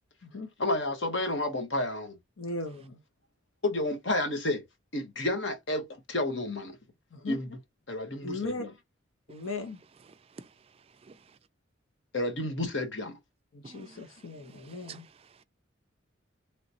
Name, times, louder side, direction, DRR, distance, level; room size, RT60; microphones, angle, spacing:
voice 1, 0.6-2.2 3.6-4.6 4.9-6.8 7.3-7.5 7.9-8.7 12.1-13.2, left 1 dB, 60° left, 1.1 m, -30 dB
voice 2, 2.4-3.0 7.1-7.4 8.2-8.7 9.3-9.8 13.5-15.0, left 2 dB, 85° left, 0.8 m, -37 dB
voice 3, 11.0-11.4 13.6-14.1 14.5-15.4, right 5 dB, 30° right, 0.3 m, -50 dB
3.2 x 3.0 x 2.7 m
head